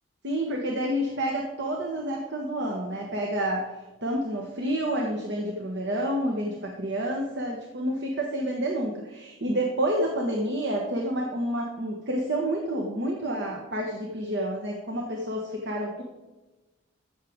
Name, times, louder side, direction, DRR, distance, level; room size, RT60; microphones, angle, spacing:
voice 1, 0.2-3.6 4.0-16.0, right 1 dB, 60° right, 0 dB, 1.3 m, -29 dB
14.0 x 6.5 x 3.7 m, 1.1 s
head